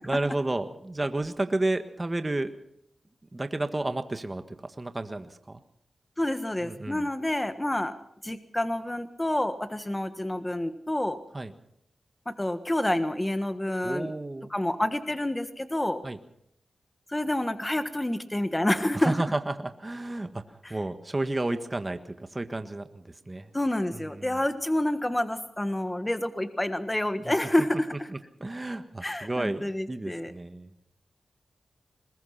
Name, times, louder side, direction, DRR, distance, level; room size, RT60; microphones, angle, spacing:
voice 1, 0.1-2.5 3.3-5.6 6.6-7.1 11.3-11.5 13.8-14.5 16.0-16.2 18.9-20.4 20.7-22.0 22.3-23.5 23.9-24.4 27.2-27.3 28.4-30.7, right 2 dB, 30° right, 8 dB, 1.6 m, -31 dB
voice 2, 6.2-7.9 8.2-11.2 12.2-14.1 14.5-16.0 17.1-19.1 20.6-20.8 23.5-28.1 29.0-30.3, left 1 dB, 15° left, 10 dB, 1.4 m, -28 dB
21.5 x 20.5 x 5.8 m, 0.74 s
cardioid pair, 65°, 0 cm